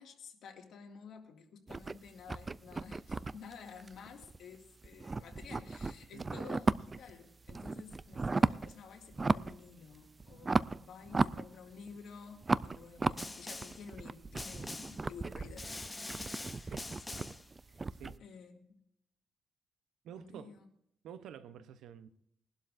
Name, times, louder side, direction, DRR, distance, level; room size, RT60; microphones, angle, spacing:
voice 1, 0.0-16.7 17.1-17.2 17.7-18.8 20.2-20.7, left 6 dB, 75° left, 2.1 m, -52 dB
sound 1, 1.7-4.6 4.8-7.1 7.4-8.7 9.1-9.6 9.9-12.0 12.4-18.2, right 3 dB, 25° right, 0.3 m, -35 dB
Snare drum, 13.2-13.9 14.4-15.1 15.6-17.5, left 2 dB, 15° left, 0.8 m, -44 dB
voice 2, 16.6-17.0 17.9-18.2 20.0-20.6 21.0-22.1, right 8 dB, 90° right, 0.8 m, -49 dB
21.5 x 12.0 x 2.6 m
cardioid pair, 135°, 0 cm